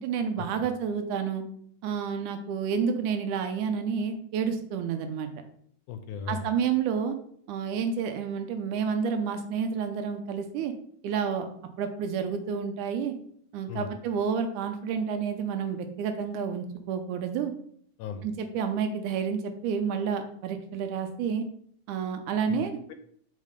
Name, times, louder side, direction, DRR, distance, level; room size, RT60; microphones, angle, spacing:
voice 1, 0.0-1.4 1.8-5.3 6.3-7.2 7.5-10.7 11.0-11.5 11.8-13.2 13.5-17.5 18.2-21.5 21.9-22.8, right 6 dB, 75° right, 7 dB, 2.0 m, -29 dB
voice 2, 5.9-6.5 13.7-13.9 18.0-18.3 22.5-22.9, left 6 dB, 80° left, 7 dB, 2.0 m, -37 dB
5.6 x 4.1 x 5.0 m, 0.63 s
omnidirectional pair, 3.8 m